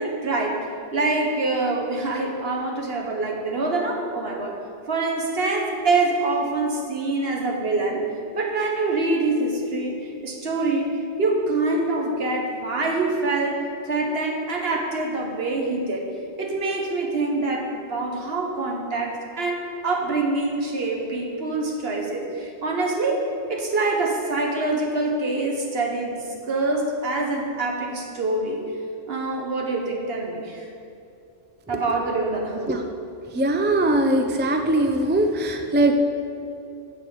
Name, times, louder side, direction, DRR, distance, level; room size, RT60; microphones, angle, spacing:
voice 1, 0.0-4.5 4.9-8.0 8.3-16.1 16.4-28.6 29.1-30.7 31.7-32.8, right 2 dB, 60° right, 0 dB, 1.5 m, -25 dB
voice 2, 33.4-35.9, right 1 dB, 15° right, 4 dB, 0.3 m, -21 dB
7.7 x 6.3 x 7.5 m, 2.6 s
omnidirectional pair, 1.2 m